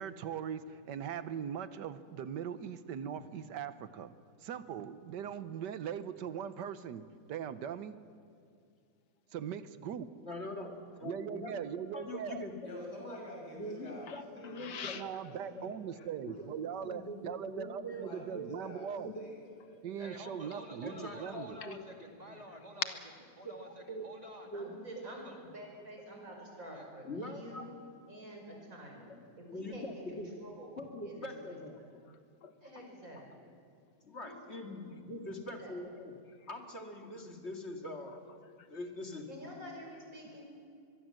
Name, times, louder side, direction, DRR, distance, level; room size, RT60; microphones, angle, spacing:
voice 1, 0.0-4.1 4.4-8.0 9.3-10.1 11.0-12.5 14.9-19.1 19.8-21.6, right 8 dB, 85° right, 12 dB, 1.5 m, -40 dB
voice 2, 10.2-11.7 11.9-12.5 13.6-14.9 15.5-15.7 16.4-18.7 18.9-19.2 20.8-21.8 22.3-22.4 23.4-23.5 23.9-24.0 24.4-24.9 27.0-27.6 29.5-30.4 30.8-31.8 34.0-36.1 36.5-38.1 38.7-39.3, left 1 dB, 40° left, 3 dB, 2.3 m, -43 dB
voice 3, 12.6-14.1 14.4-16.4 16.8-16.9 17.9-18.2 18.6-18.9 19.1-19.8, left 1 dB, 70° left, -1 dB, 7.1 m, -49 dB
voice 4, 14.1-15.2 16.0-16.1 21.3-21.4 21.6-21.8 31.9-32.9 36.4-36.5 37.2-37.3 38.1-38.7, left 7 dB, 85° left, 9 dB, 1.8 m, -49 dB
voice 5, 19.9-22.9 23.4-24.5 25.0-25.4 26.7-26.9, right 1 dB, 25° right, 2 dB, 2.6 m, -50 dB
voice 6, 24.5-27.8 28.1-30.7 31.0-31.6 32.6-33.2 34.2-34.4 34.7-34.8 35.6-35.8 39.3-40.5, equal, 50° right, 0 dB, 6.1 m, -49 dB
23.5 x 22.5 x 7.7 m, 2.4 s
omnidirectional pair, 1.8 m